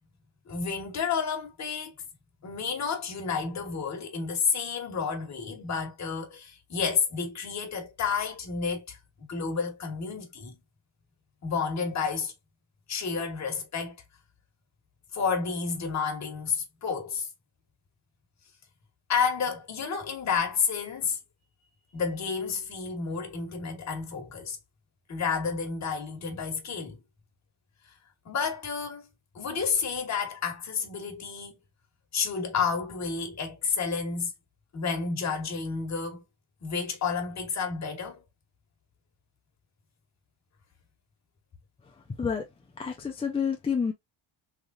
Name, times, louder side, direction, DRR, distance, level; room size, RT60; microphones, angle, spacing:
voice 1, 0.5-1.9 2.4-9.0 9.3-10.6 11.4-12.3 12.9-14.0 15.1-17.3 19.1-21.2 21.9-24.6 25.1-27.0 28.2-29.1 29.3-31.5 32.1-34.3 34.7-36.2 36.6-38.2, left 5 dB, 35° left, 1.3 m, -30 dB
voice 2, 42.8-43.9, left 6 dB, 15° left, 0.4 m, -28 dB
3.7 x 3.2 x 2.3 m
cardioid pair, 160°, 47 cm